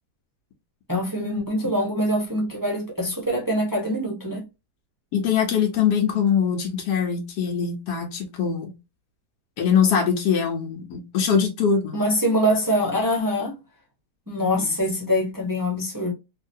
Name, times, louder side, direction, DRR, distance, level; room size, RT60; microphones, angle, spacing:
voice 1, 0.9-4.4 11.9-13.6 14.3-16.1, equal, 20° right, 0.5 m, -24 dB
voice 2, 5.1-8.7 9.6-12.0 14.6-14.7, left 7 dB, 85° left, 1.3 m, -22 dB
3.1 x 2.7 x 2.6 m
omnidirectional pair, 1.7 m